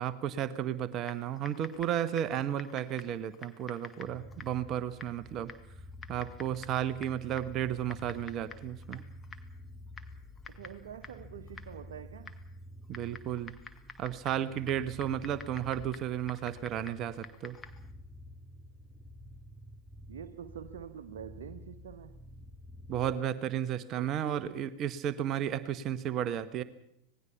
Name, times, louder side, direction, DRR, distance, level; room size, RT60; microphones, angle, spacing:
voice 1, 0.0-5.5 6.1-9.0 12.9-13.5 14.0-17.6 22.9-26.6, right 10 dB, 35° right, 12 dB, 1.2 m, -33 dB
Typing, 1.0-17.9, left 5 dB, 20° left, 1.8 m, -51 dB
sound 1, 3.8-23.2, left 1 dB, ahead, 1.1 m, -50 dB
voice 2, 10.5-12.4 20.1-22.2 24.0-24.5, right 9 dB, 65° right, 7 dB, 1.2 m, -46 dB
26.0 x 19.5 x 5.8 m, 0.76 s
figure-of-eight pair, 90°, 0 cm